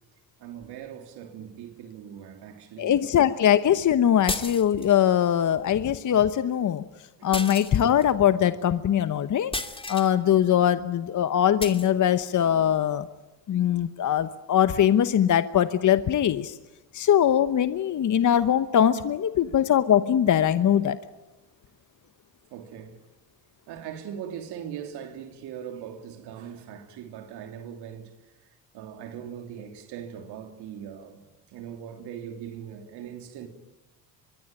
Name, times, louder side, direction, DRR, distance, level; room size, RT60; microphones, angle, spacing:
voice 1, 0.4-3.1 7.2-7.3 22.5-23.0 23.7-28.1 28.7-33.5, right 9 dB, 80° right, 3.2 m, -40 dB
voice 2, 2.8-6.8 7.2-9.5 9.9-13.1 13.5-16.6 16.9-21.0, left 10 dB, 50° left, 1.0 m, -22 dB
sound 1, 4.3-5.0 7.3-8.1 9.5-10.1 11.6-11.9, left 2 dB, 15° left, 2.5 m, -33 dB
24.0 x 22.5 x 9.0 m
supercardioid pair, 70°, 39 cm